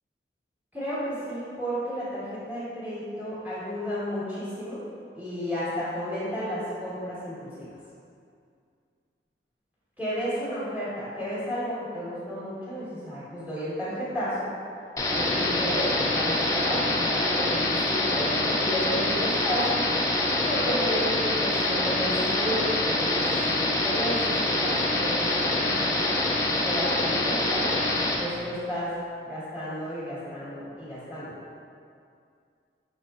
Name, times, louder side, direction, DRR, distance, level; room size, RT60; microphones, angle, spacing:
voice 1, 0.7-4.8 5.1-7.7 10.0-14.5 15.1-19.9 20.4-26.1 26.6-27.7 28.2-28.9 29.2-31.3, equal, 10° right, -12 dB, 1.4 m, -32 dB
sound 1, 15.0-28.2, left 2 dB, 20° left, 0.4 m, -25 dB
5.3 x 4.0 x 2.4 m, 2.4 s
head